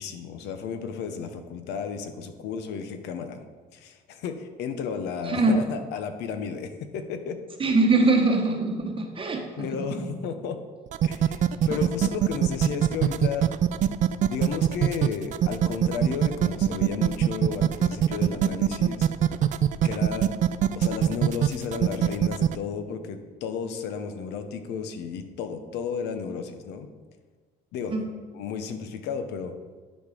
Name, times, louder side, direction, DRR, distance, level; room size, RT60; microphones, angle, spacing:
voice 1, 0.0-3.4 3.7-7.4 8.0-8.1 9.6-10.6 11.0-13.5 14.3-19.1 19.8-20.3 20.7-26.9 27.7-28.0 28.3-29.5, left 6 dB, 85° left, 8 dB, 0.9 m, -33 dB
voice 2, 5.2-5.6 7.6-9.7 10.0-10.1 11.7-11.8 27.9-28.1, right 2 dB, 30° right, 2 dB, 1.0 m, -23 dB
sound 1, 10.9-22.6, right 10 dB, 50° right, 0.4 m, -22 dB
10.0 x 4.4 x 5.0 m, 1.5 s
cardioid pair, 110°, 17 cm